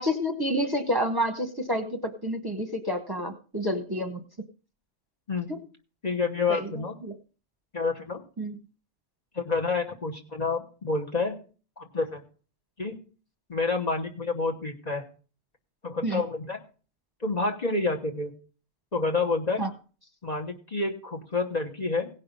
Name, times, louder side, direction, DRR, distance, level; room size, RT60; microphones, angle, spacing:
voice 1, 0.0-4.2 6.5-6.7 7.0-7.1 8.4-8.5 16.0-16.2 19.6-19.7, equal, 20° right, 6 dB, 1.0 m, -29 dB
voice 2, 6.0-7.0 7.7-8.2 9.3-11.4 11.8-12.2 12.8-13.0 13.5-15.1 15.8-16.6 17.2-18.3 18.9-19.6 20.2-22.1, left 3 dB, 40° left, 2 dB, 1.3 m, -28 dB
16.5 x 5.7 x 5.3 m, 0.38 s
omnidirectional pair, 1.2 m